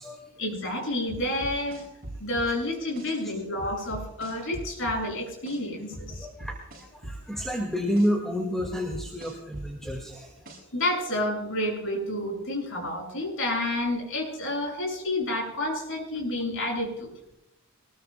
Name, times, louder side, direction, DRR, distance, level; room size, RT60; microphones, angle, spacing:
voice 1, 0.4-1.8 2.2-6.3 10.7-17.1, left 1 dB, 60° left, -1 dB, 6.9 m, -29 dB
sound 1, 1.1-3.1 3.6-5.6 5.9-8.1 8.6-10.8, right 1 dB, 45° right, 7.2 m, -40 dB
voice 2, 6.2-10.3, equal, ahead, 0 dB, 2.0 m, -30 dB
23.0 x 20.5 x 2.3 m, 0.84 s
head